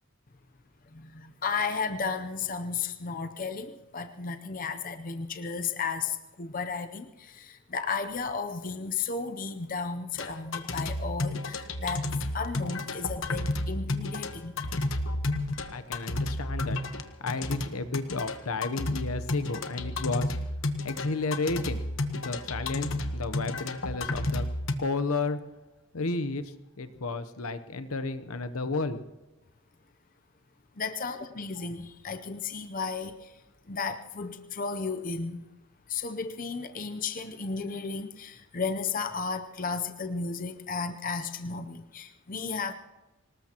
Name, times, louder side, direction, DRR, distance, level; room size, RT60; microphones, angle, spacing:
voice 1, 0.9-14.6 30.8-33.4 33.7-35.4 35.9-42.7, left 5 dB, 40° left, 7 dB, 0.6 m, -34 dB
sound 1, 10.2-24.7, left 2 dB, 60° left, 1.2 m, -32 dB
voice 2, 15.7-16.8 17.2-20.5 20.8-24.5 24.8-25.4 25.9-29.0, left 3 dB, 75° left, 11 dB, 0.9 m, -32 dB
25.0 x 19.5 x 3.0 m, 1.1 s
head